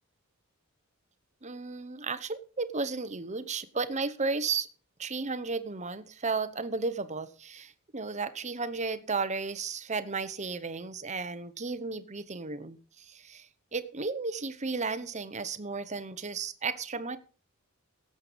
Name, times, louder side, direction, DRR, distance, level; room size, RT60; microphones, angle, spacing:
voice 1, 1.4-4.7 5.0-17.2, right 4 dB, 35° right, 12 dB, 1.0 m, -34 dB
17.5 x 7.9 x 5.2 m, 0.38 s
head